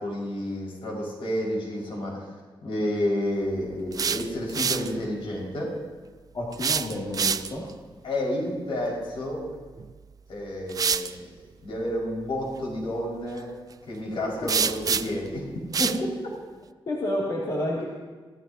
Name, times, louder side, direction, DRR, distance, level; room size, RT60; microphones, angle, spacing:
voice 1, 0.0-2.3 2.6-5.7 8.0-9.5 10.3-11.3 11.6-13.5 13.9-16.1, left 1 dB, 70° left, -3 dB, 5.1 m, -30 dB
sound 1, 3.7-4.9 6.5-7.7 9.8-9.9 10.7-11.1 14.5-15.3 15.7-16.0, right 6 dB, 40° right, 0.4 m, -26 dB
voice 2, 6.3-7.6 14.6-14.7 16.9-17.8, left 1 dB, 50° left, -5 dB, 2.4 m, -29 dB
26.5 x 15.5 x 2.8 m, 1.4 s
wide cardioid pair, 175°, 9 cm